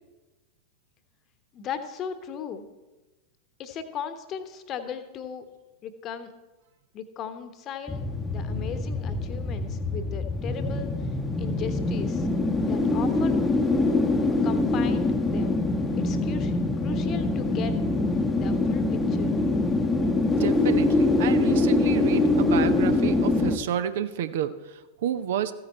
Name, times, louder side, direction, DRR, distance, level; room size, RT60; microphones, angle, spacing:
voice 1, 1.5-2.7 3.6-5.4 5.8-6.3 6.9-10.9 11.4-12.3 12.7-13.4 14.4-15.6 16.0-18.0 18.3-19.3, left 7 dB, 35° left, 9 dB, 1.1 m, -37 dB
sound 1, 7.9-23.6, left 2 dB, 10° left, 0.9 m, -24 dB
voice 2, 20.3-25.5, right 9 dB, 55° right, 12 dB, 0.6 m, -30 dB
14.5 x 8.8 x 4.3 m, 1.1 s
figure-of-eight pair, 90°, 0 cm